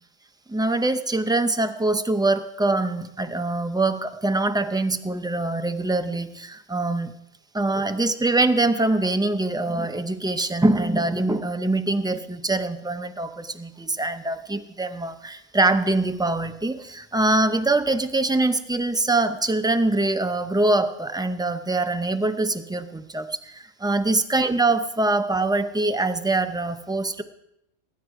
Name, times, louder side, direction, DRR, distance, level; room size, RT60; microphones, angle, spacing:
voice 1, 0.5-7.1 7.5-27.2, right 2 dB, 5° right, 8 dB, 0.3 m, -24 dB
20.0 x 9.3 x 4.8 m, 0.83 s
omnidirectional pair, 1.3 m